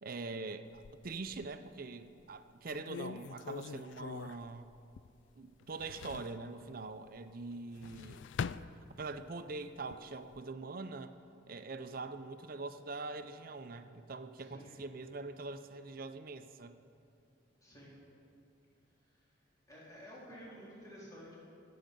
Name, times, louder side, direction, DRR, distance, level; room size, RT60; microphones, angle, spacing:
voice 1, 0.0-4.7 5.4-8.3 9.0-11.1 11.5-16.8, right 3 dB, 50° right, 10 dB, 0.6 m, -43 dB
sound 1, 0.7-1.7 2.2-2.3 2.7-5.3 5.6-6.4 7.6-9.3 9.8-10.4, left 6 dB, 75° left, 0.3 m, -44 dB
voice 2, 14.4-14.8 17.6-18.0 19.1-19.2 19.7-21.4, equal, 20° left, -7 dB, 3.7 m, -52 dB
25.5 x 8.7 x 5.3 m, 2.7 s
head